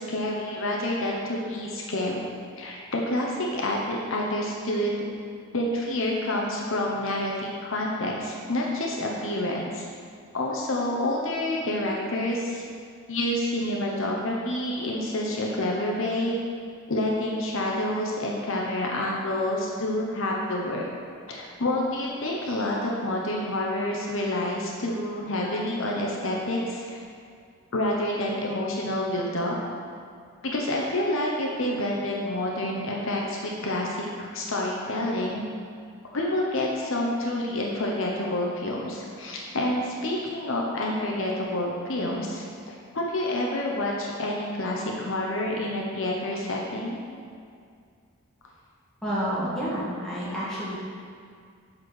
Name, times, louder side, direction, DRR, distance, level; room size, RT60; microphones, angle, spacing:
voice 1, 0.0-2.2 2.6-4.9 5.5-9.9 10.3-12.6 13.1-16.4 16.9-20.8 21.3-26.8 27.7-29.6 30.4-35.4 36.1-47.0, left 1 dB, 60° left, -2 dB, 0.9 m, -28 dB
voice 2, 49.0-50.8, equal, ahead, -10 dB, 1.9 m, -30 dB
7.8 x 4.4 x 6.3 m, 2.3 s
head